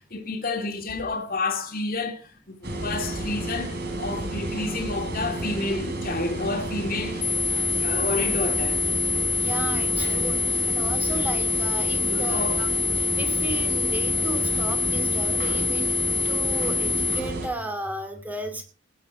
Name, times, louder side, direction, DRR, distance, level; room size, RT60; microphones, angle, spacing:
voice 1, 0.0-8.9 12.0-12.8, left 3 dB, 50° left, 2.6 m, -30 dB
sound 1, 2.6-17.5, right 2 dB, 60° right, 4.7 m, -31 dB
sound 2, 7.2-17.2, left 5 dB, 30° left, 1.1 m, -25 dB
voice 2, 9.4-10.4 10.7-12.7 13.0-18.6, right 1 dB, 10° right, 2.5 m, -34 dB
18.5 x 8.4 x 4.6 m
head